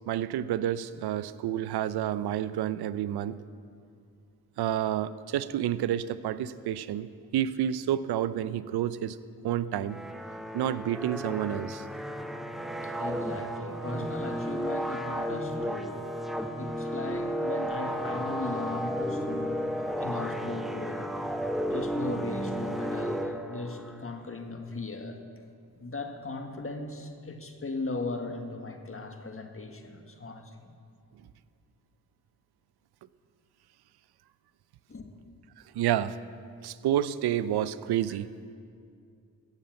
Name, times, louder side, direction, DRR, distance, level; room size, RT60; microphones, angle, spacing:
voice 1, 0.1-3.4 4.6-7.1 7.3-9.2 9.4-10.0 10.5-11.8 14.0-14.1 35.7-36.2 36.6-38.3, right 11 dB, 80° right, 16 dB, 0.6 m, -29 dB
sound 1, 9.9-24.0, equal, ahead, 1.0 m, -33 dB
voice 2, 12.8-16.1 16.6-21.1 21.7-25.2 25.8-30.7 34.9-35.1 38.1-38.2, left 3 dB, 35° left, 5 dB, 1.6 m, -38 dB
14.5 x 7.2 x 8.8 m, 2.3 s
cardioid pair, 50°, 38 cm